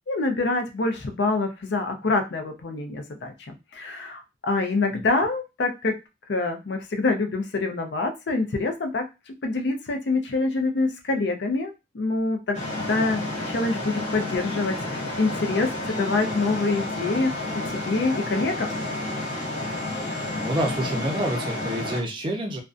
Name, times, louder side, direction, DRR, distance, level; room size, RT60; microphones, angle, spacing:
voice 1, 0.1-6.0 6.3-17.3 17.7-18.8, left 3 dB, 65° left, 5 dB, 0.5 m, -26 dB
sound 1, 12.5-22.0, left 1 dB, 35° left, 0.8 m, -30 dB
voice 2, 20.1-22.6, right 1 dB, 25° right, 2 dB, 0.5 m, -28 dB
2.5 x 2.2 x 2.4 m, 0.26 s
head